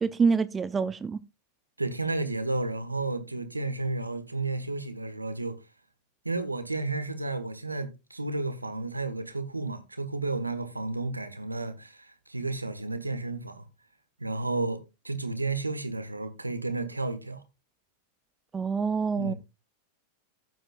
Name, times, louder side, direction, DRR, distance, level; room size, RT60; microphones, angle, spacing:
voice 1, 0.0-1.2 18.5-19.3, right 5 dB, 15° right, 0.5 m, -26 dB
voice 2, 1.8-5.6 6.2-13.6 14.2-17.4 19.2-19.3, right 3 dB, 85° right, 1.3 m, -32 dB
15.0 x 7.9 x 2.3 m
figure-of-eight pair, 90°, 0 cm